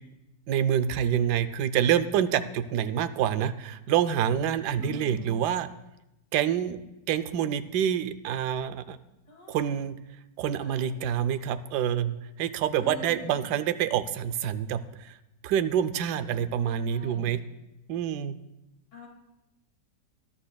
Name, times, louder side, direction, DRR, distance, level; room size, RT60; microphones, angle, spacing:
voice 1, 0.5-5.7 6.3-9.0 9.5-10.0 10.4-15.2 15.4-17.4 17.9-18.4, right 9 dB, 75° right, 11 dB, 1.2 m, -27 dB
voice 2, 4.8-5.3 9.3-9.6 10.4-10.9 12.8-13.5 16.6-17.3 18.9-19.1, left 3 dB, 85° left, -1 dB, 2.8 m, -43 dB
19.5 x 11.5 x 2.3 m, 0.92 s
omnidirectional pair, 1.8 m